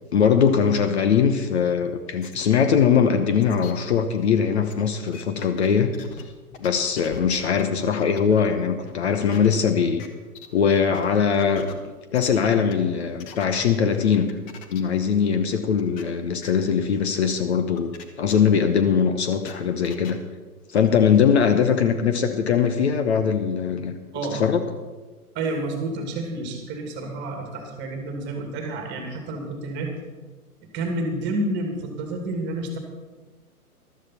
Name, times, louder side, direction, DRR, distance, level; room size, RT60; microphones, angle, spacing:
voice 1, 0.1-5.9 6.6-10.0 10.5-11.7 12.1-14.4 14.7-20.2 20.7-23.9 24.3-24.6, left 7 dB, 45° left, 8 dB, 1.0 m, -21 dB
sound 1, 2.2-2.3 2.8-2.9 3.4-3.7 4.7-4.8 5.1-6.2 6.5-6.7 7.0-7.6 8.0-8.5 8.8-9.5 10.0-10.1 10.3-10.5 10.9-11.7 12.1-12.3 12.7-13.4 14.3-14.8 15.1-15.2 15.8-16.0 16.4-16.5 17.2-17.3 17.8-18.0 18.3-18.4 18.8-20.1 20.8-20.9, left 7 dB, 20° left, 0.9 m, -42 dB
voice 2, 25.3-29.9 30.6-32.8, right 2 dB, 25° right, 3 dB, 2.4 m, -29 dB
14.0 x 12.5 x 4.4 m, 1.3 s
figure-of-eight pair, 115°, 46 cm